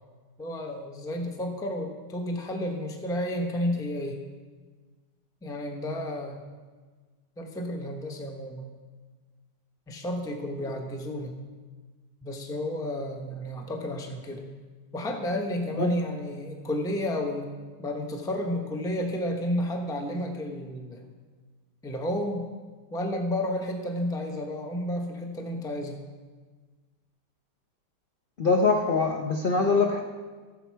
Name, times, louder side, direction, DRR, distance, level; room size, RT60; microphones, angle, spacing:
voice 1, 0.4-4.2 5.4-6.5 7.4-8.7 9.9-11.3 12.2-14.5 14.9-17.5 17.8-21.1 21.8-22.5 22.9-26.0, left 1 dB, 5° left, 3 dB, 0.5 m, -31 dB
voice 2, 28.4-30.0, left 4 dB, 55° left, 1 dB, 0.6 m, -23 dB
14.5 x 6.7 x 4.6 m, 1.4 s
omnidirectional pair, 1.9 m